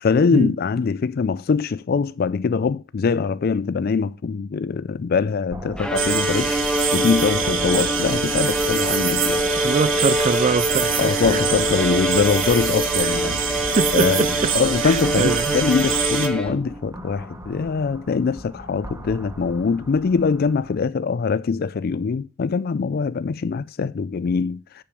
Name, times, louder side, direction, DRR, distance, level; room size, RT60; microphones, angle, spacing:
voice 1, 0.0-6.6 6.9-9.7 11.0-13.4 13.9-14.3 14.5-24.8, left 5 dB, 50° left, 0.4 m, -23 dB
sound 1, 5.5-20.8, equal, 15° right, 1.3 m, -39 dB
Bowed string instrument, 5.8-16.8, equal, 5° left, 1.1 m, -25 dB
sound 2, 6.0-16.3, right 8 dB, 70° right, 1.2 m, -26 dB
voice 2, 9.6-11.4 13.0-13.1 13.7-14.5 14.8-15.6, right 4 dB, 35° right, 0.4 m, -23 dB
7.6 x 6.9 x 6.9 m
head